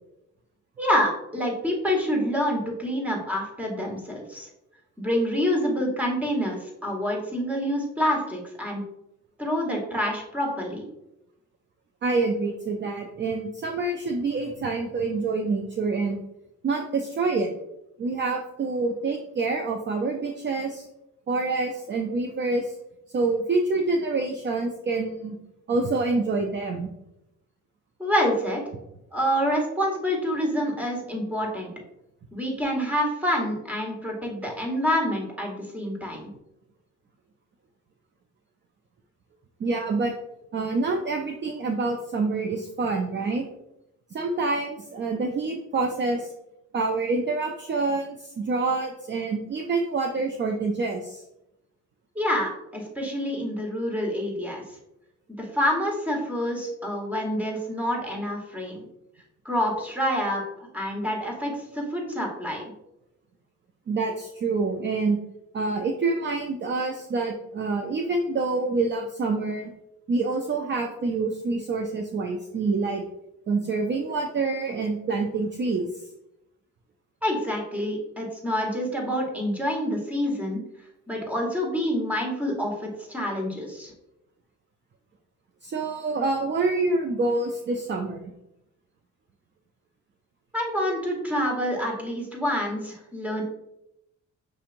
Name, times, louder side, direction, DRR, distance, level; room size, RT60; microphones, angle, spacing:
voice 1, 0.8-4.5 5.0-8.8 9.4-10.8 28.0-28.6 29.1-31.7 32.3-36.3 52.1-54.6 55.4-58.8 59.4-60.4 60.7-62.6 77.2-80.6 81.1-83.9 90.5-93.4, equal, 5° right, 0 dB, 1.4 m, -27 dB
voice 2, 12.0-16.2 16.6-17.5 18.0-20.9 21.3-22.8 23.1-25.4 25.7-26.9 39.6-40.1 40.5-43.4 44.1-46.3 46.7-51.2 63.9-65.2 65.5-69.7 70.1-73.0 73.5-76.0 85.6-88.3, right 3 dB, 40° right, 4 dB, 0.5 m, -27 dB
6.1 x 2.8 x 2.5 m, 0.85 s
cardioid pair, 90°, 30 cm